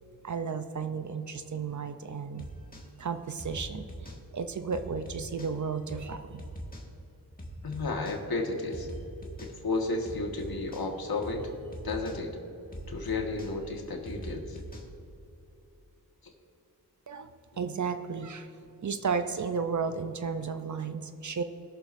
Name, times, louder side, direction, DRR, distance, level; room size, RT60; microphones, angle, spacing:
voice 1, 0.2-2.5 3.0-6.4 17.1-17.3 17.6-18.5 18.8-21.4, right 5 dB, 45° right, 9 dB, 0.7 m, -33 dB
sound 1, 2.4-2.9 3.4-4.2 4.7-5.5 5.9-6.1 6.4-6.9 7.4-8.2 8.7-9.5 10.1-10.9 11.2-11.4 11.7-12.2 12.7-14.9, equal, 20° left, 1.8 m, -42 dB
voice 2, 7.6-8.9 9.4-11.5 11.8-12.3 12.9-14.6 16.2-16.3, left 3 dB, 65° left, 1 dB, 1.7 m, -32 dB
20.5 x 6.8 x 2.7 m, 2.9 s
cardioid pair, 60°, 40 cm